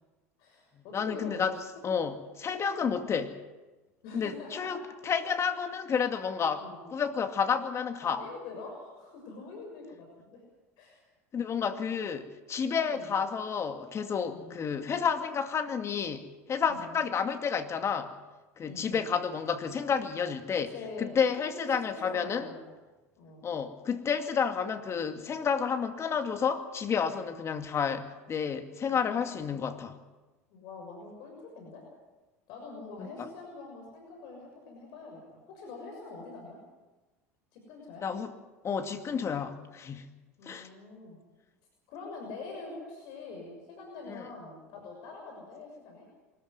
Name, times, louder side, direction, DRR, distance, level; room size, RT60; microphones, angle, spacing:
voice 1, 0.4-1.5 4.0-4.7 5.2-5.4 6.6-6.9 8.0-10.4 10.8-11.0 12.9-13.1 14.2-14.5 16.7-16.9 18.6-19.1 20.7-21.2 21.5-22.7 23.2-23.5 28.9-29.7 30.5-31.8 32.5-36.6 37.5-38.0 40.4-41.2 41.9-46.1, left 3 dB, 60° left, 1 dB, 6.6 m, -45 dB
voice 2, 0.9-1.6 1.8-3.4 4.1-6.6 6.9-8.2 11.3-18.1 18.6-20.7 21.0-22.5 23.4-30.0 33.0-33.3 38.0-38.3 38.6-40.1 40.4-40.7 44.1-44.2, left 6 dB, 35° left, 7 dB, 2.3 m, -30 dB
24.5 x 14.0 x 9.6 m, 1.2 s
hypercardioid pair, 75°, 8 cm